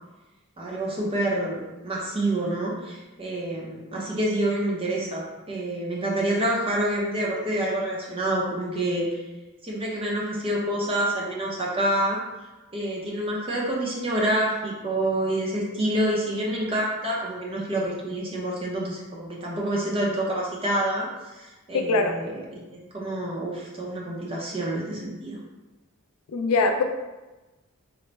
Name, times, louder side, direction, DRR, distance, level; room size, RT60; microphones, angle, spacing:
voice 1, 0.6-9.1 9.6-12.2 12.7-25.4, right 1 dB, 25° right, -3 dB, 0.6 m, -27 dB
voice 2, 21.7-22.1 26.3-26.8, left 3 dB, 75° left, 5 dB, 0.4 m, -22 dB
3.9 x 2.1 x 3.2 m, 1.1 s
head